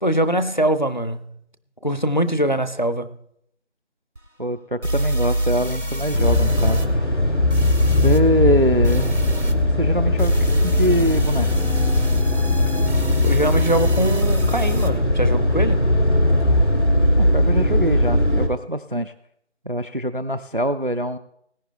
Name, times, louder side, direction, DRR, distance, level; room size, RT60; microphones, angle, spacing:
voice 1, 0.0-1.3 1.8-3.2 13.2-15.9, right 1 dB, 40° left, 12 dB, 0.7 m, -22 dB
sound 1, 4.2-4.3 4.8-6.9 7.5-8.2 8.8-9.5 10.2-14.9, right 1 dB, 80° right, 2.2 m, -26 dB
voice 2, 4.4-6.8 8.0-9.2 9.8-10.3 10.6-11.5 17.2-19.1 19.7-21.2, equal, 50° right, 10 dB, 0.4 m, -23 dB
sound 2, 6.1-18.5, left 1 dB, 75° left, 2.6 m, -19 dB
20.0 x 9.6 x 3.3 m, 0.72 s
figure-of-eight pair, 180°, 35 cm